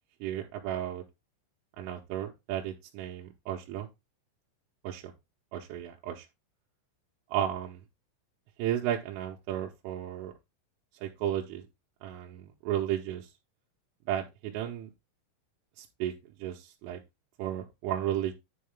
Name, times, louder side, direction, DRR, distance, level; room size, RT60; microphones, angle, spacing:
voice 1, 0.2-1.0 1.8-3.9 4.8-5.1 5.5-6.3 7.3-7.8 8.6-10.3 11.0-11.6 12.0-13.3 14.1-14.9 15.8-16.1 16.4-17.0 17.4-18.3, right 11 dB, 85° right, 0 dB, 3.3 m, -33 dB
9.5 x 4.7 x 3.4 m, 0.22 s
omnidirectional pair, 5.8 m